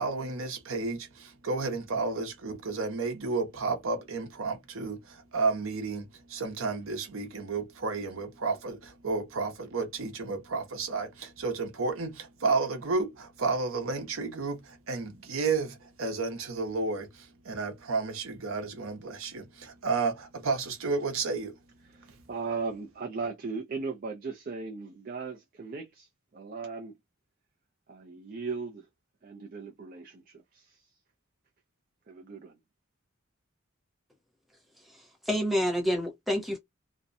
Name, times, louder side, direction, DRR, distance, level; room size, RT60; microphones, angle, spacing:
voice 1, 0.0-21.6, right 4 dB, 80° right, 0.8 m, -32 dB
voice 2, 21.9-26.1 26.3-26.9 27.9-28.9 29.2-30.8 32.1-32.6, right 4 dB, 45° right, 0.4 m, -37 dB
voice 3, 34.9-36.6, equal, ahead, 0.7 m, -29 dB
2.6 x 2.1 x 2.5 m
head